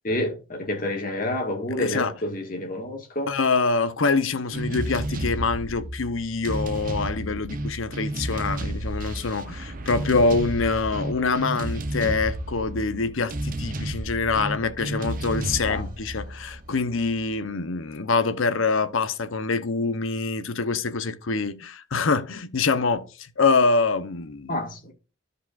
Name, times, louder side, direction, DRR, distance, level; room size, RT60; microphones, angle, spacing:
voice 1, 0.0-3.3 8.3-8.4 15.7-15.9 24.5-24.9, left 1 dB, 40° left, 1.7 m, -29 dB
voice 2, 1.8-2.1 3.3-24.6, left 4 dB, 80° left, 0.8 m, -25 dB
sound 1, 4.5-17.3, right 1 dB, 40° right, 0.8 m, -32 dB
13.5 x 5.0 x 2.5 m
head